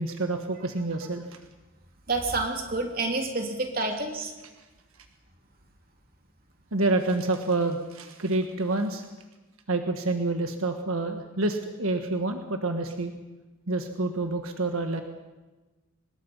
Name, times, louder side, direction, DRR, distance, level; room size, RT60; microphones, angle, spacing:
voice 1, 0.0-1.4 6.7-9.0 9.7-13.1 13.7-15.0, right 2 dB, 85° right, 6 dB, 1.5 m, -28 dB
voice 2, 2.1-4.3, right 3 dB, 45° right, 2 dB, 3.2 m, -28 dB
25.0 x 20.5 x 5.6 m, 1.2 s
head